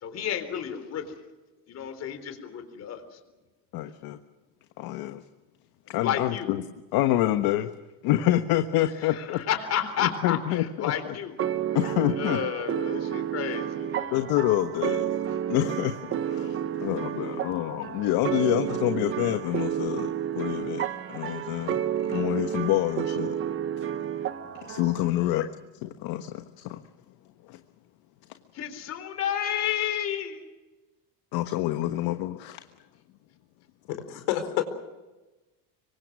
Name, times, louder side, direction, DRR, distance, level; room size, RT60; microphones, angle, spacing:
voice 1, 0.0-1.1 1.7-3.2 6.0-6.5 9.0-11.4 12.2-14.3 25.2-25.5 28.5-30.4, left 9 dB, 40° left, 8 dB, 3.9 m, -31 dB
voice 2, 3.7-4.2 4.8-5.2 5.9-6.6 6.9-7.7 8.0-9.4 10.0-11.1 11.7-12.4 14.1-20.1 20.3-20.8 21.1-23.4 23.8-23.9 24.6-25.5 25.8-26.8 27.5-27.6 31.3-32.6, left 14 dB, 60° left, 8 dB, 1.4 m, -27 dB
sound 1, 11.4-25.1, right 10 dB, 30° right, 1.1 m, -31 dB
voice 3, 33.9-34.6, left 12 dB, 85° left, 8 dB, 4.5 m, -28 dB
26.0 x 24.0 x 6.3 m, 1.1 s
cardioid pair, 155°, 40 cm